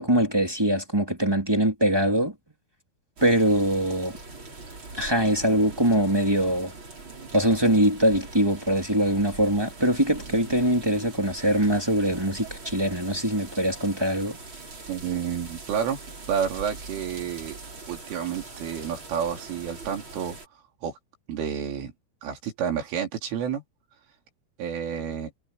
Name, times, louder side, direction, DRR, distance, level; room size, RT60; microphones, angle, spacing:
voice 1, 0.0-2.3 3.2-4.2 4.9-6.7 7.3-14.4, right 1 dB, 5° right, 2.4 m, -23 dB
sound 1, 3.2-20.5, right 3 dB, 25° right, 5.2 m, -42 dB
voice 2, 14.9-16.0 16.3-17.6 17.9-20.4 20.8-21.0 21.3-21.9 22.2-23.6 24.6-25.3, right 8 dB, 80° right, 6.2 m, -30 dB
omnidirectional pair, 5.6 m